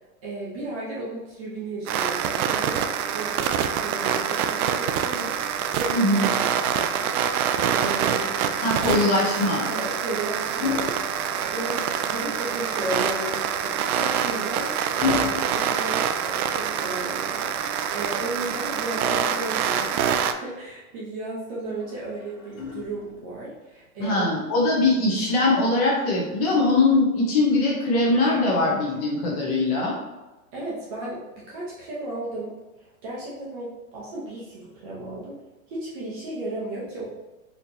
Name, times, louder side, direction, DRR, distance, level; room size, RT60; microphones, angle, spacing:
voice 1, 0.2-5.3 5.8-7.1 7.3-8.3 9.0-9.1 9.7-20.0 20.4-24.3 30.5-32.5 32.8-35.4 35.7-37.0, right 2 dB, 25° right, -5 dB, 0.6 m, -35 dB
sound 1, 1.9-20.3, right 8 dB, 80° right, 0.5 m, -26 dB
voice 2, 5.9-6.3 8.6-9.6 24.0-29.9, left 2 dB, 25° left, -4 dB, 0.7 m, -21 dB
sound 2, 9.5-11.9 13.5-16.7 18.5-19.6 21.6-23.4 24.6-24.9, left 5 dB, 70° left, 1.2 m, -35 dB
4.4 x 2.9 x 2.6 m, 1.1 s
supercardioid pair, 165°, 43 cm